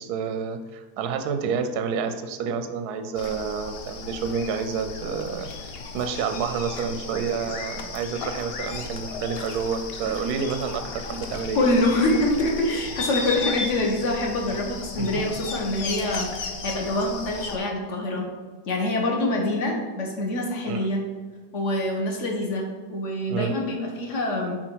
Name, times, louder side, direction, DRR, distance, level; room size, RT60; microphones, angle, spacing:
voice 1, 0.0-11.6 15.0-15.2 20.7-20.9 23.3-23.5, right 6 dB, 70° right, 8 dB, 1.0 m, -29 dB
sound 1, 3.1-17.6, left 4 dB, 75° left, 0.5 m, -35 dB
voice 2, 11.5-18.2 18.7-21.0 21.5-24.6, left 1 dB, 45° left, 0 dB, 1.4 m, -25 dB
7.6 x 4.4 x 4.6 m, 1.4 s
omnidirectional pair, 2.0 m